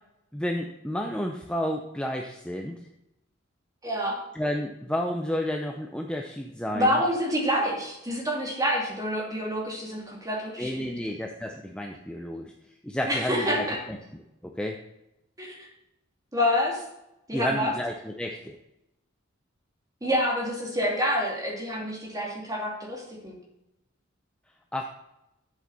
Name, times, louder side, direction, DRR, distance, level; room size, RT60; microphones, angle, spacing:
voice 1, 0.3-2.8 4.3-7.0 10.6-12.5 12.8-13.6 14.4-14.8 17.3-18.6 24.7-24.8, equal, 5° left, 2 dB, 0.6 m, -31 dB
voice 2, 3.8-4.2 6.7-10.9 13.1-13.8 15.4-15.7 16.3-16.9 17.3-17.7 20.0-23.3, equal, 20° right, -1 dB, 2.5 m, -27 dB
10.5 x 7.8 x 4.1 m, 0.89 s
head